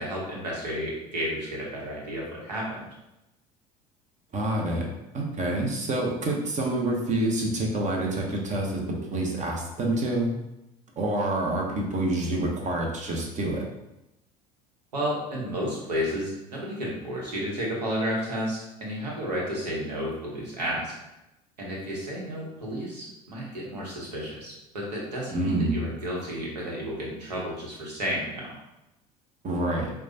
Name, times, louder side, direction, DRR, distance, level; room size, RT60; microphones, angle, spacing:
voice 1, 0.0-2.9 14.9-20.9 21.6-28.5, equal, 90° right, -3 dB, 1.0 m, -32 dB
voice 2, 4.3-4.9 5.1-10.3 11.0-13.6 25.3-25.8 29.4-29.9, right 1 dB, 35° right, 0 dB, 0.8 m, -27 dB
4.7 x 2.3 x 2.7 m, 0.91 s
hypercardioid pair, 70°, 20 cm